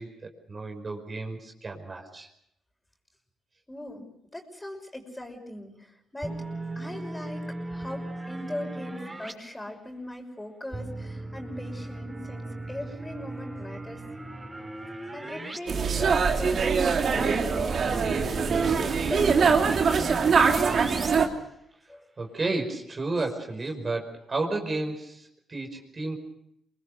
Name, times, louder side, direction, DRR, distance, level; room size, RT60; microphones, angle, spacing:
voice 1, 0.0-2.3 22.2-26.2, right 2 dB, 40° right, 3 dB, 5.4 m, -32 dB
voice 2, 3.7-6.4 6.8-14.0 15.1-20.2 21.9-22.1, left 1 dB, 15° left, 4 dB, 6.1 m, -40 dB
sound 1, 6.2-9.3 10.7-15.6 15.9-16.0 17.6-21.1, right 2 dB, 25° right, 6.2 m, -38 dB
sound 2, 15.7-21.3, right 5 dB, 55° right, 2.7 m, -23 dB
25.5 x 20.5 x 6.8 m, 0.75 s
supercardioid pair, 60°, 0 cm